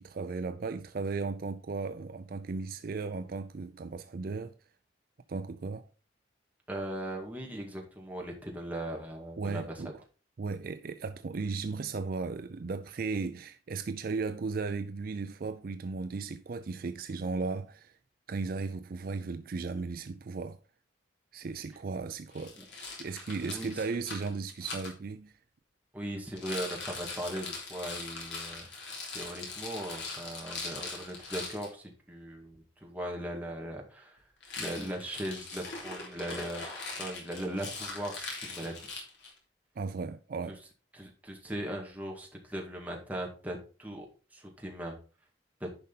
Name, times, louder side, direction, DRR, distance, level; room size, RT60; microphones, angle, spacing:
voice 1, 0.0-4.5 5.3-5.9 9.4-9.9 10.4-17.9 18.3-20.6 21.3-25.3 39.8-40.6, right 4 dB, 50° right, 0.4 m, -36 dB
voice 2, 6.7-9.8 22.6-22.7 23.4-23.8 25.9-28.7 29.1-34.2 34.6-36.7 37.0-38.7 40.9-44.1 44.3-45.0 45.6-45.7, right 1 dB, 10° right, 2.0 m, -39 dB
Rattle, 22.3-24.9 26.3-31.7 34.4-39.4, left 3 dB, 65° left, 3.1 m, -41 dB
10.5 x 5.3 x 4.0 m
head